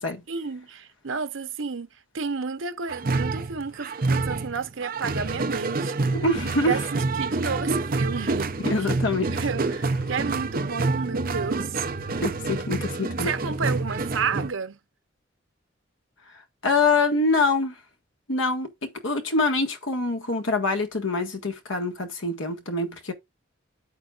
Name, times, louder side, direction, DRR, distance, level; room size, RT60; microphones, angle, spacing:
voice 1, 0.3-1.9 2.1-6.1 6.6-8.5 9.4-11.8 13.2-14.8, right 5 dB, 85° right, 0.9 m, -31 dB
sound 1, 2.9-14.5, right 3 dB, 45° right, 0.7 m, -27 dB
voice 2, 6.2-6.8 8.7-9.3 12.2-13.3 16.6-17.7 18.3-23.1, left 3 dB, 85° left, 1.7 m, -25 dB
8.9 x 8.4 x 2.5 m
head